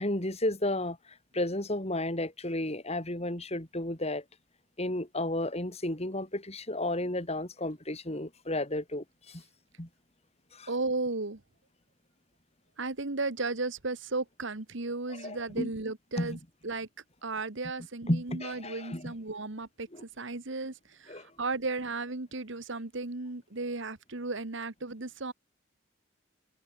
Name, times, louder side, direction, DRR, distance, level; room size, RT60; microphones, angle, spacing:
voice 1, 0.0-4.2 4.8-9.4 9.8-9.9 10.5-10.7 15.1-15.7 16.2-16.4 18.1-19.1 19.9-20.0 21.1-21.3, left 1 dB, 30° left, 3.5 m, -33 dB
voice 2, 10.7-11.4 12.8-16.4 16.6-16.9 17.2-25.3, right 3 dB, 60° right, 1.5 m, -35 dB
head